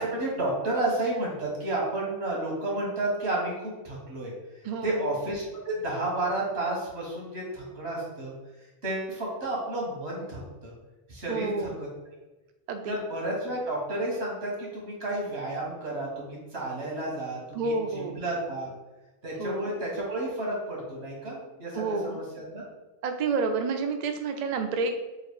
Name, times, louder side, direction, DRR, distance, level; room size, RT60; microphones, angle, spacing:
voice 1, 0.0-4.3 4.8-8.3 8.8-10.7 11.1-11.9 12.9-18.7 19.2-22.6, right 2 dB, 90° right, -3 dB, 1.7 m, -31 dB
voice 2, 4.6-5.0 11.3-11.7 12.7-12.9 17.5-18.2 19.4-19.7 21.7-22.2 23.0-25.0, right 4 dB, 55° right, 5 dB, 0.5 m, -29 dB
3.9 x 2.5 x 4.6 m, 1.1 s
omnidirectional pair, 1.1 m